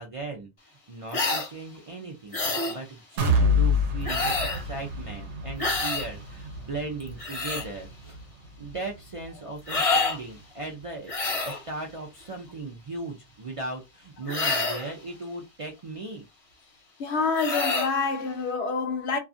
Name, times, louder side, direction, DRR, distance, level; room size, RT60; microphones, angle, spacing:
voice 1, 0.0-2.4 2.6-8.2 8.6-11.1 11.5-16.3, right 3 dB, 50° right, 0.4 m, -37 dB
sound 1, 1.1-1.5 2.3-2.8 4.0-4.6 5.6-6.1 7.0-7.7 9.7-10.2 11.1-11.6 14.3-14.9 17.3-17.9, left 3 dB, 35° left, 0.7 m, -27 dB
sound 2, 3.2-11.0 11.4-11.5 11.9-12.0, left 2 dB, 80° right, 0.9 m, -29 dB
voice 2, 17.0-19.2, left 4 dB, 75° left, 0.9 m, -27 dB
2.4 x 2.4 x 2.5 m
omnidirectional pair, 1.1 m